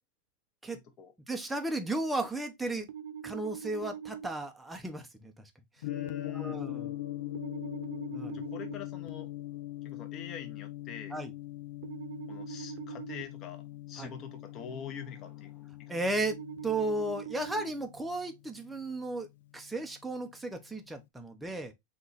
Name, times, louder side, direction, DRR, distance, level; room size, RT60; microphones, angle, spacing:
voice 1, 1.3-2.9 3.2-5.5 6.2-7.0 8.1-8.4 11.1-11.3 14.0-14.1 15.9-16.4 16.6-19.3 19.5-21.7, right 2 dB, 5° right, 0.6 m, -34 dB
sound 1, 2.9-4.3 7.3-8.7 11.8-13.2 16.3-17.7, right 8 dB, 70° right, 0.8 m, -42 dB
Gong, 5.8-20.0, left 14 dB, 75° left, 0.4 m, -42 dB
voice 2, 5.8-6.6 8.3-9.3 9.8-11.2 12.3-15.9, left 7 dB, 25° left, 0.9 m, -45 dB
3.8 x 2.9 x 3.9 m
supercardioid pair, 165°, 0 cm